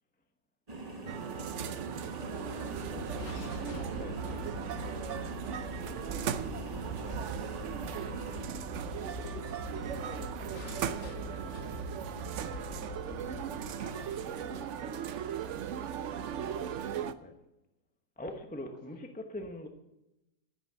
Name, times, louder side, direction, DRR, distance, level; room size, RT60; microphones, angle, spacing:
sound 1, 0.7-8.5, right 2 dB, 25° right, 1.3 m, -43 dB
sound 2, 1.1-17.1, right 9 dB, 70° right, 0.7 m, -38 dB
voice 1, 2.2-3.9 4.3-6.7 8.1-11.9 12.7-16.8 18.2-19.0, left 1 dB, 55° left, 0 dB, 4.5 m, -51 dB
sound 3, 2.5-14.7, left 1 dB, 75° left, 2.5 m, -44 dB
voice 2, 18.2-19.7, left 1 dB, 5° left, 5 dB, 0.7 m, -41 dB
10.0 x 9.3 x 7.8 m, 0.94 s
omnidirectional pair, 1.9 m